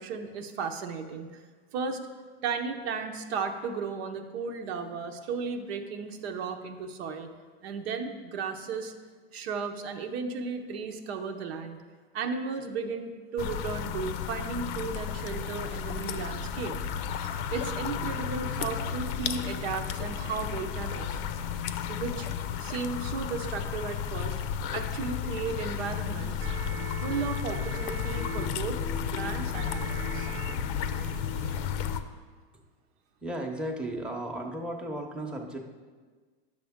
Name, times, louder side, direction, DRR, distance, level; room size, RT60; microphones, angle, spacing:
voice 1, 0.0-1.4 1.7-2.0 2.4-7.3 7.6-8.9 9.3-11.8 12.1-16.8 17.2-21.2 21.9-22.3 22.6-24.3 24.7-26.4 27.0-28.8 29.1-30.3, right 5 dB, 75° right, 5 dB, 0.9 m, -35 dB
sound 1, 13.4-32.0, left 8 dB, 60° left, 0.6 m, -33 dB
sound 2, 16.8-21.4, left 4 dB, 90° left, 0.9 m, -42 dB
sound 3, 24.3-32.0, right 8 dB, 30° right, 0.5 m, -46 dB
voice 2, 33.2-35.6, right 1 dB, 5° right, 0 dB, 0.8 m, -35 dB
10.5 x 6.5 x 3.6 m, 1.5 s
supercardioid pair, 120°, 31 cm